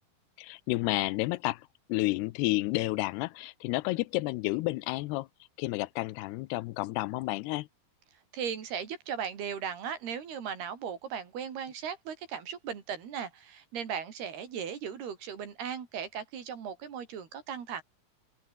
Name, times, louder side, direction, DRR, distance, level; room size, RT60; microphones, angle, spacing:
voice 1, 0.4-5.3 5.6-7.7, left 20 dB, 90° left, 2.8 m, -31 dB
voice 2, 8.3-17.8, right 7 dB, 75° right, 5.1 m, -37 dB
open air
omnidirectional pair, 4.6 m